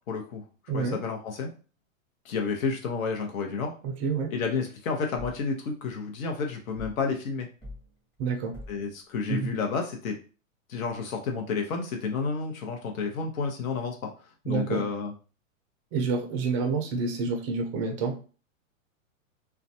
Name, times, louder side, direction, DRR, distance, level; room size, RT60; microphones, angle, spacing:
voice 1, 0.1-0.4 0.7-1.5 2.2-3.7 4.3-7.5 8.7-10.2 10.7-14.1 14.4-15.1, left 4 dB, 75° left, 3 dB, 0.9 m, -30 dB
voice 2, 0.7-1.0 3.8-4.3 8.2-8.5 9.3-9.5 14.5-14.8 15.9-18.2, right 4 dB, 25° right, 3 dB, 0.3 m, -28 dB
sound 1, 5.2-5.5 6.8-7.1 7.6-7.9 8.5-8.9, left 2 dB, 10° left, 0.8 m, -43 dB
2.4 x 2.2 x 2.6 m, 0.36 s
hypercardioid pair, 130°, 41 cm